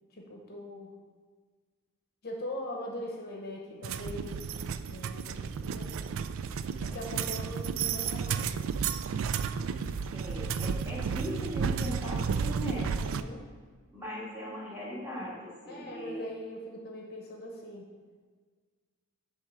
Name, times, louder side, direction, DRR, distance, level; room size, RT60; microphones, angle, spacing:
voice 1, 0.1-0.9 2.2-4.4 4.9-6.1 6.8-8.6 13.0-13.4 15.7-17.9, left 1 dB, 45° left, -1 dB, 0.9 m, -41 dB
sound 1, 3.8-13.2, right 6 dB, 65° right, 0.3 m, -32 dB
voice 2, 10.1-12.9 13.9-16.3, equal, 10° right, -6 dB, 1.7 m, -39 dB
8.0 x 3.4 x 5.9 m, 1.5 s
head